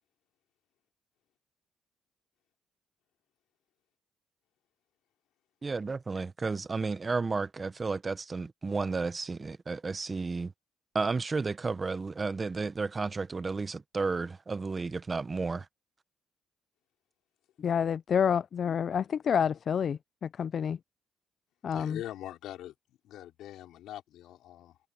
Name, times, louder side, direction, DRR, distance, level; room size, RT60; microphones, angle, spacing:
voice 1, 5.6-10.5 10.9-15.7, right 4 dB, 30° right, 0.9 m, -32 dB
voice 2, 17.6-20.8 21.6-22.0, left 7 dB, 55° left, 0.3 m, -28 dB
voice 3, 21.7-24.8, left 13 dB, 85° left, 4.9 m, -43 dB
cardioid pair, 90°, 0 cm